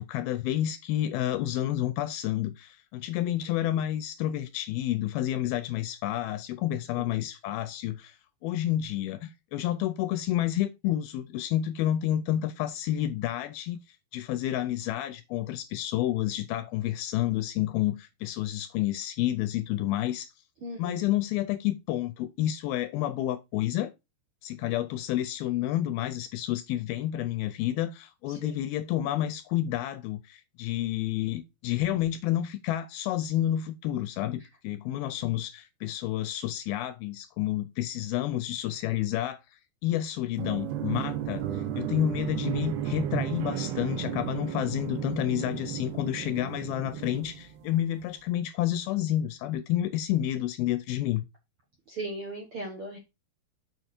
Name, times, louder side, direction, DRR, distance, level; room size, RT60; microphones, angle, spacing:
voice 1, 0.0-8.2 8.4-20.3 20.8-23.9 24.4-39.4 39.8-51.2, left 13 dB, 80° left, 2.2 m, -30 dB
voice 2, 20.6-21.1 28.3-28.5 51.9-53.0, right 2 dB, 60° right, 1.5 m, -38 dB
sound 1, 40.3-47.9, right 10 dB, 80° right, 3.2 m, -33 dB
7.0 x 6.8 x 4.3 m
omnidirectional pair, 4.7 m